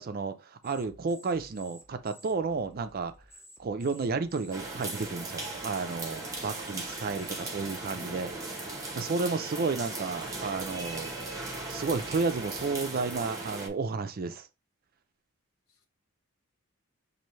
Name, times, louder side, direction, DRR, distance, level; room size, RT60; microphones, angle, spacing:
voice 1, 0.0-3.1 3.6-8.3 8.9-11.1 11.7-14.5, right 4 dB, 45° right, 0.4 m, -32 dB
sound 1, 0.6-7.3 7.7-8.0 8.7-8.8 9.2-13.8, equal, 10° left, 0.6 m, -55 dB
sound 2, 4.5-13.7, right 2 dB, 15° right, 0.9 m, -38 dB
voice 2, 6.2-6.4 8.0-8.2 8.5-8.7 15.7-15.9, left 4 dB, 80° left, 0.9 m, -56 dB
5.4 x 2.6 x 3.1 m
head